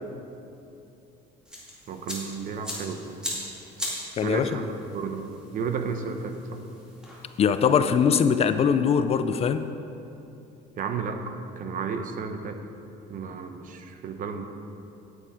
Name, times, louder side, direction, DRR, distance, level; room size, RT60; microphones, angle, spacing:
sound 1, 1.4-7.9, equal, 5° right, 2.3 m, -39 dB
voice 1, 1.9-3.2 4.2-6.6 10.8-12.6 13.1-14.5, right 5 dB, 50° right, 7 dB, 0.9 m, -33 dB
voice 2, 4.2-4.7 7.4-9.6, left 7 dB, 35° left, 10 dB, 0.4 m, -22 dB
9.9 x 8.9 x 4.8 m, 2.8 s
cardioid pair, 130°, 17 cm